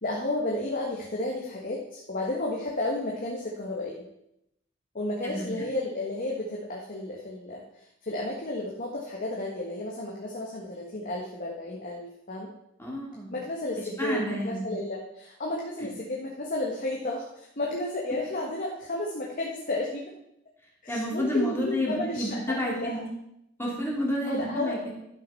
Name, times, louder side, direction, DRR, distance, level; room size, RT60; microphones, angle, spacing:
voice 1, 0.0-4.1 4.9-12.5 13.3-20.1 20.8-23.0 24.2-24.8, left 1 dB, 45° left, -2 dB, 1.6 m, -32 dB
voice 2, 5.2-5.7 12.8-13.3 14.0-14.7 20.9-23.0 23.6-24.9, left 1 dB, 10° left, -3 dB, 2.7 m, -30 dB
11.5 x 6.4 x 5.6 m, 0.79 s
head